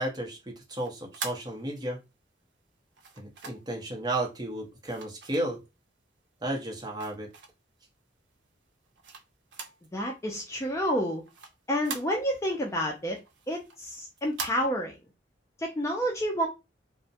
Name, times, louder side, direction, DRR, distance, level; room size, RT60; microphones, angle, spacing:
voice 1, 0.0-2.0 3.2-5.6 6.4-7.3, right 1 dB, 25° right, 0.8 m, -33 dB
sound 1, 0.7-2.1 2.9-3.8 4.8-5.9 6.4-7.8 8.3-9.9 10.2-10.3 10.6-12.5 12.9-14.5, right 5 dB, 80° right, 0.5 m, -42 dB
voice 2, 9.9-11.2 11.7-13.2 13.5-14.9 15.6-16.5, equal, 15° left, 0.4 m, -29 dB
2.3 x 2.1 x 2.6 m
head